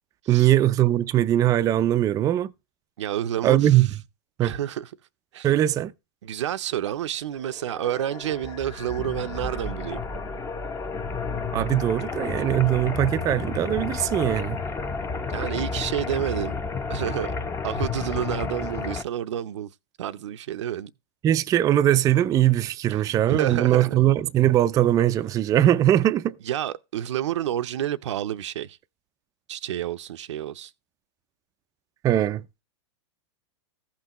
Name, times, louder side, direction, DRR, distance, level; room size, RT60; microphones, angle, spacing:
voice 1, 0.3-2.5 3.4-3.9 4.4-4.6 5.4-5.9 11.5-14.6 21.2-26.3 32.0-32.4, right 12 dB, 25° right, 0.4 m, -21 dB
voice 2, 3.0-3.9 4.4-4.9 5.3-5.5 6.2-10.0 15.3-16.5 16.9-17.3 17.6-19.7 20.0-20.9 22.9-24.0 26.4-28.8 29.5-30.7, right 11 dB, 80° right, 0.6 m, -29 dB
sound 1, 7.5-19.0, left 4 dB, 15° left, 0.8 m, -31 dB
15.0 x 5.9 x 3.0 m
hypercardioid pair, 130°, 15 cm